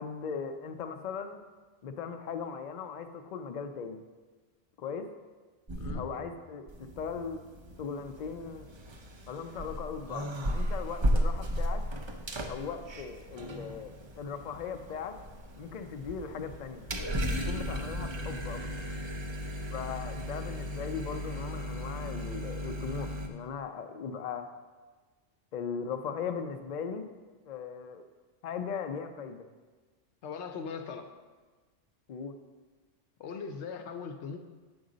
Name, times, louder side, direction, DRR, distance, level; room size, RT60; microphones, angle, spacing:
voice 1, 0.0-1.4 1.8-4.0 4.8-5.1 5.9-7.4 7.8-8.7 9.3-11.8 12.5-15.2 15.6-16.9 17.4-18.6 19.7-24.5 25.5-27.1 27.5-28.0 28.4-29.4 32.1-32.3, left 6 dB, 60° left, 6 dB, 0.5 m, -38 dB
sound 1, 5.7-6.4 6.7-23.3, equal, 40° right, 0.4 m, -35 dB
voice 2, 30.2-31.1 33.2-34.4, left 5 dB, 75° left, 6 dB, 0.9 m, -39 dB
7.9 x 5.1 x 3.8 m, 1.3 s
omnidirectional pair, 1.2 m